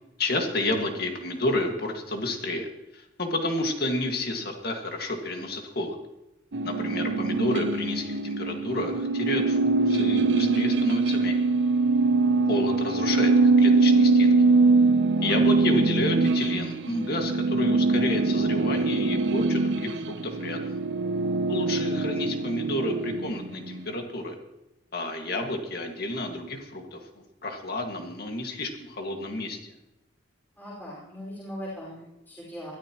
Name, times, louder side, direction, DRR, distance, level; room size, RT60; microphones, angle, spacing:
voice 1, 0.2-2.7 2.9-6.0 6.6-11.7 12.5-14.3 15.2-20.8 21.5-24.4 24.9-29.7, left 1 dB, 55° left, 3 dB, 2.0 m, -30 dB
sound 1, 6.5-23.8, right 3 dB, 70° right, 0.8 m, -23 dB
voice 2, 30.6-32.7, equal, 10° left, -7 dB, 5.3 m, -40 dB
21.5 x 13.0 x 3.1 m, 0.92 s
head